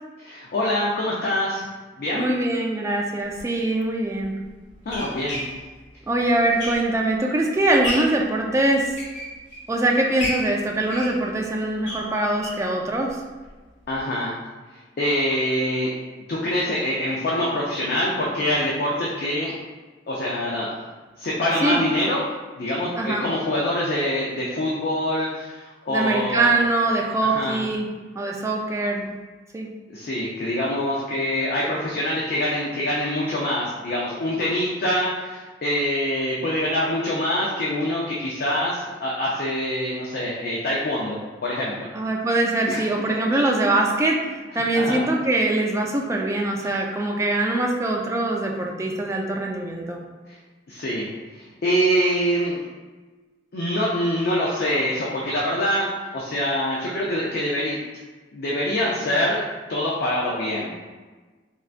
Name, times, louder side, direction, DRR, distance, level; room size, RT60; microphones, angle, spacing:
voice 1, 0.2-1.6 2.0-2.3 4.9-5.4 13.9-14.4 15.0-15.9 16.3-19.6 20.1-20.7 21.2-22.3 22.6-26.5 27.0-27.6 29.9-41.9 42.7-42.8 44.6-45.0 46.6-46.7 50.7-51.1 51.6-52.6 53.5-57.8 58.3-59.4 59.7-60.7, left 1 dB, 60° left, -4 dB, 0.4 m, -25 dB
voice 2, 2.1-4.4 6.1-8.9 9.7-13.2 21.6-21.8 23.0-23.2 25.9-27.9 28.2-29.0 29.5-29.7 41.9-50.0, right 2 dB, 15° right, 0 dB, 0.3 m, -23 dB
sound 1, 3.3-3.4 4.2-7.2 7.6-8.2 8.8-9.7 10.2-12.7 13.1-13.2 13.5-13.6 13.9-14.0, left 1 dB, 85° left, 1.3 m, -33 dB
3.7 x 2.2 x 2.4 m, 1.3 s
head